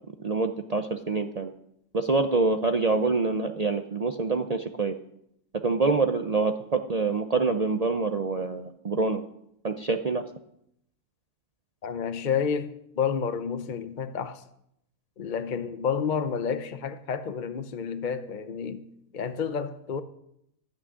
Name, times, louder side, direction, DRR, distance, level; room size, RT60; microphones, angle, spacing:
voice 1, 0.2-1.5 1.9-5.0 5.6-9.2 9.6-10.2, right 3 dB, 65° right, 0.3 m, -26 dB
voice 2, 11.8-14.4 15.2-18.8 19.1-20.0, left 6 dB, 45° left, 0.6 m, -30 dB
14.5 x 6.2 x 9.5 m
omnidirectional pair, 1.7 m